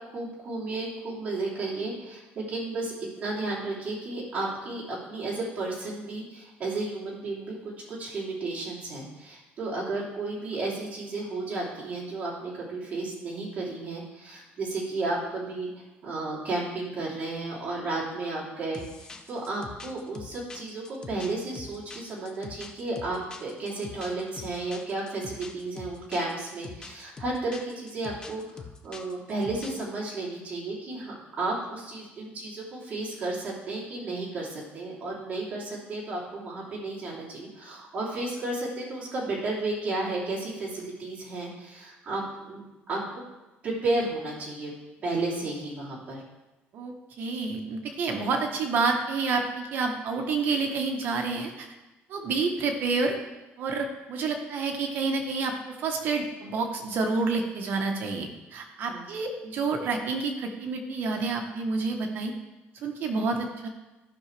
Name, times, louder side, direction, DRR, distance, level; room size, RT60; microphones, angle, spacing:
voice 1, 0.1-7.6 7.9-43.2 43.6-44.7 45.0-46.2 58.9-59.0, right 2 dB, 35° right, -5 dB, 3.2 m, -33 dB
sound 1, 18.7-29.9, left 4 dB, 20° left, 0.6 m, -44 dB
voice 2, 46.7-51.7 52.1-53.2 53.6-62.3 62.8-63.7, right 4 dB, 50° right, 3 dB, 1.1 m, -29 dB
14.5 x 5.9 x 3.3 m, 1.0 s
cardioid pair, 155°, 4 cm